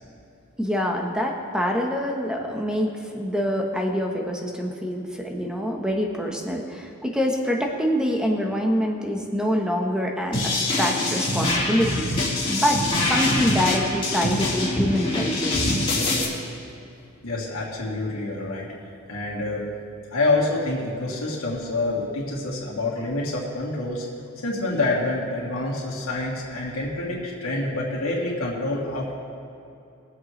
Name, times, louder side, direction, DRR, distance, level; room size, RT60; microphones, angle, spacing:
voice 1, 0.6-12.1 12.5-12.8 13.1-15.7, equal, 5° right, 1 dB, 1.1 m, -25 dB
sound 1, 10.3-16.2, left 2 dB, 25° left, 2.6 m, -24 dB
voice 2, 17.2-19.6 20.1-24.1 24.4-29.1, left 2 dB, 75° left, -5 dB, 2.7 m, -27 dB
22.0 x 7.8 x 3.2 m, 2.7 s
head